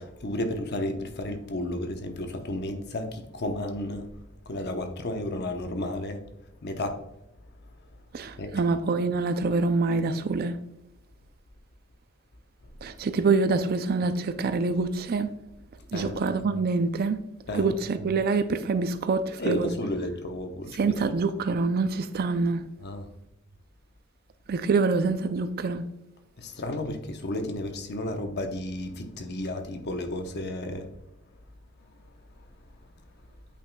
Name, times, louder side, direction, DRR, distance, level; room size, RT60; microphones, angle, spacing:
voice 1, 0.0-4.1 4.5-6.2 6.6-6.9 8.4-8.6 15.9-16.2 17.5-17.7 19.4-20.9 22.8-23.1 26.4-30.8, left 1 dB, 50° left, 0.8 m, -32 dB
voice 2, 8.1-10.6 12.8-15.3 15.9-17.2 17.5-19.7 20.7-22.7 24.5-25.9, right 4 dB, 45° right, 0.4 m, -26 dB
8.4 x 5.7 x 2.2 m
head